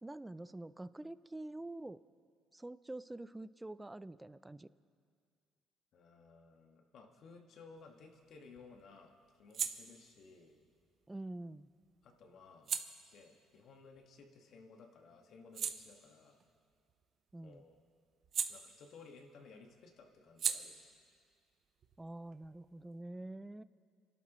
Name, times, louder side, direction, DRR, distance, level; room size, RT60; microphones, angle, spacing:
voice 1, 0.0-2.0 2.5-4.7 11.1-11.7 17.3-17.6 22.0-23.6, right 2 dB, 10° right, 16 dB, 0.3 m, -46 dB
voice 2, 5.9-10.6 12.0-12.7 13.1-16.4 17.4-17.8 18.5-20.9, left 4 dB, 60° left, 3 dB, 1.6 m, -58 dB
sound 1, 7.8-14.6 15.0-19.3 19.5-22.9, right 7 dB, 50° right, 0.7 m, -44 dB
28.5 x 12.0 x 3.1 m, 2.2 s
cardioid pair, 100°, 0 cm